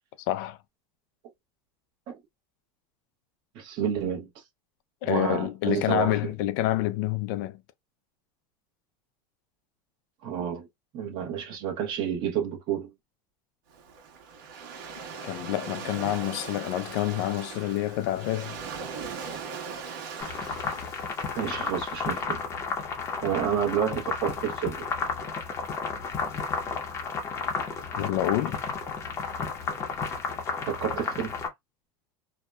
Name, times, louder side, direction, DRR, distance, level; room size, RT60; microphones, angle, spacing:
voice 1, 0.3-0.6 5.0-7.6 15.2-18.6 28.0-28.6, left 14 dB, 60° left, 0.4 m, -28 dB
voice 2, 3.5-4.3 5.0-6.2 10.2-10.7 10.9-12.9 21.4-22.4 23.2-24.9 30.7-31.3, right 9 dB, 40° right, 0.9 m, -29 dB
Waves surf, 13.7-21.9, right 5 dB, 65° right, 1.2 m, -40 dB
sound 1, 20.2-31.5, left 5 dB, 25° left, 0.7 m, -32 dB
2.7 x 2.2 x 2.2 m
supercardioid pair, 160°, 12 cm